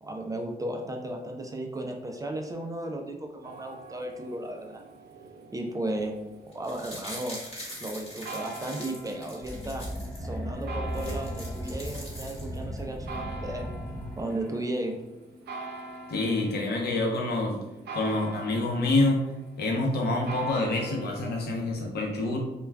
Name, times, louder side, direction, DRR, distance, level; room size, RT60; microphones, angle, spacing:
voice 1, 0.0-4.8 5.5-6.1 6.5-7.4 7.8-9.9 10.2-13.7 14.2-15.0, right 1 dB, 20° right, 2 dB, 0.4 m, -35 dB
sound 1, 3.4-21.4, right 3 dB, 75° right, 0.5 m, -44 dB
sound 2, 6.5-10.2 10.6-10.7 10.9-12.8 13.1-13.2, equal, 35° left, 1.1 m, -43 dB
sound 3, 9.4-14.6, equal, 5° left, 0.8 m, -36 dB
voice 2, 16.1-17.6 17.9-19.2 19.6-22.4, left 2 dB, 70° left, 0 dB, 0.7 m, -27 dB
2.3 x 2.2 x 3.3 m, 0.96 s
cardioid pair, 80°, 17 cm